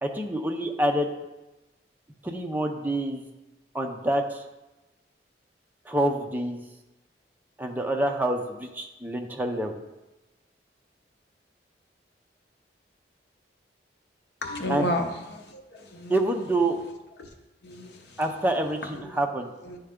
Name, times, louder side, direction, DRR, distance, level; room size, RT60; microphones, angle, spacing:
voice 1, 0.0-1.1 2.2-3.2 3.7-4.4 5.9-6.6 7.6-9.8 14.7-14.9 16.1-16.8 18.2-19.5, right 1 dB, 10° right, 2 dB, 0.5 m, -27 dB
voice 2, 14.4-16.1 17.2-17.3 17.6-18.2 19.0-19.2 19.6-19.8, left 1 dB, 65° left, 3 dB, 0.8 m, -32 dB
9.8 x 3.3 x 3.6 m, 1.0 s
head